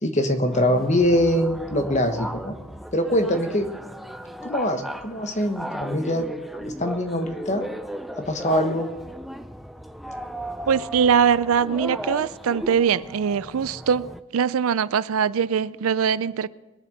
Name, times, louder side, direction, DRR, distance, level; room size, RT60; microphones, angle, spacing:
voice 1, 0.0-2.6 2.9-3.7 4.4-6.3 6.6-7.7 8.2-8.9, equal, 35° left, 1.2 m, -23 dB
sound 1, 0.5-14.2, equal, ahead, 0.4 m, -36 dB
voice 2, 10.7-16.5, right 7 dB, 75° right, 0.4 m, -22 dB
21.5 x 7.3 x 6.6 m
head